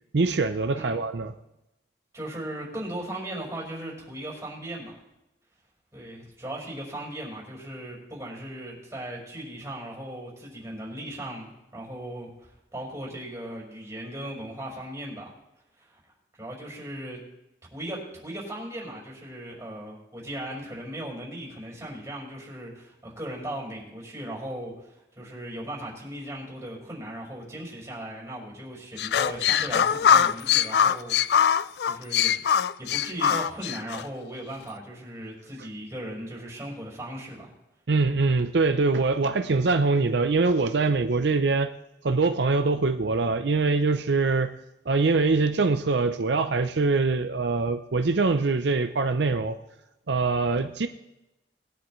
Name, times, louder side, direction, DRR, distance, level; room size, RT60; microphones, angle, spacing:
voice 1, 0.1-1.3 37.9-41.7 42.0-44.5 44.9-49.6 50.1-50.9, right 3 dB, 80° right, 0.6 m, -23 dB
voice 2, 2.1-4.9 5.9-15.3 15.8-16.0 16.4-17.2 17.7-32.3 32.8-37.5, right 1 dB, 15° right, 4.8 m, -38 dB
sound 1, 29.0-34.0, left 8 dB, 65° left, 0.3 m, -22 dB
21.0 x 10.5 x 3.2 m
head